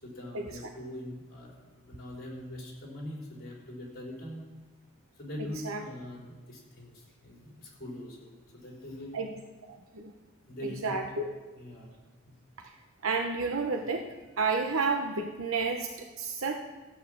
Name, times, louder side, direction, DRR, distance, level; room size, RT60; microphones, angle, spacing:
voice 1, 0.0-4.4 5.2-9.2 10.5-11.0 11.6-11.9, left 1 dB, 50° left, -2 dB, 4.1 m, -43 dB
voice 2, 5.4-5.8 9.1-9.3 9.7-10.1 10.6-11.3 12.6-12.7 13.0-14.1 14.4-16.6, right 4 dB, 80° right, 4 dB, 0.9 m, -31 dB
14.0 x 9.1 x 6.4 m, 1.2 s
head